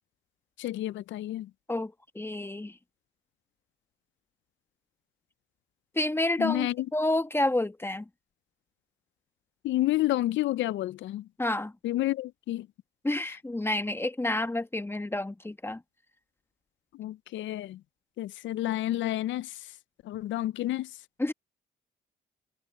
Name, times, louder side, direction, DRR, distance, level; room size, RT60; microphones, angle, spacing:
voice 1, 0.6-1.5 6.4-6.7 9.6-11.3 11.8-12.7 16.9-17.8 18.2-19.5 20.0-20.9, left 15 dB, 70° left, 0.5 m, -30 dB
voice 2, 1.7-2.7 5.9-8.0 11.4-11.7 13.0-15.8 21.2-21.3, left 1 dB, 10° left, 1.3 m, -29 dB
cardioid pair, 90°, 20 cm